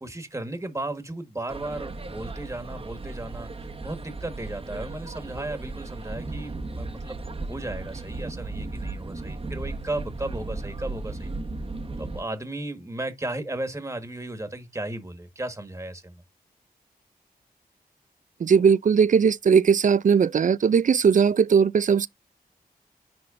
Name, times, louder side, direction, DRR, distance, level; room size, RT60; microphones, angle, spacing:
voice 1, 0.0-7.2 7.5-11.3 12.0-16.2, right 2 dB, 20° right, 1.5 m, -35 dB
sound 1, 1.5-12.2, right 2 dB, 35° right, 1.0 m, -35 dB
voice 2, 18.4-22.1, right 6 dB, 55° right, 0.4 m, -19 dB
10.5 x 3.7 x 2.5 m
wide cardioid pair, 70°, 16 cm